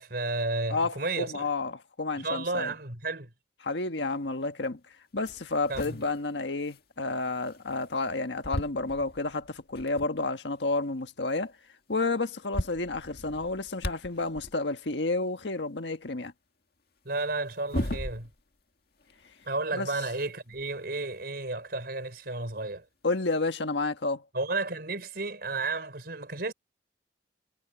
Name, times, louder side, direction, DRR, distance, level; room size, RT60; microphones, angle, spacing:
voice 1, 0.0-1.5 2.2-3.3 5.7-6.0 17.0-18.3 19.4-22.8 24.3-26.5, right 3 dB, 60° right, 4.8 m, -32 dB
voice 2, 0.7-2.7 3.6-4.8 5.1-11.5 11.9-16.3 19.7-19.9 23.0-24.2, left 3 dB, 75° left, 1.5 m, -30 dB
sound 1, 4.6-4.7 5.2-8.1 8.4-10.2 10.7-10.8 11.0-11.2 12.0-12.1 12.3-14.6 17.1-18.6 19.0-21.2 22.2-22.3 23.3-23.4, left 1 dB, 60° left, 2.1 m, -39 dB
head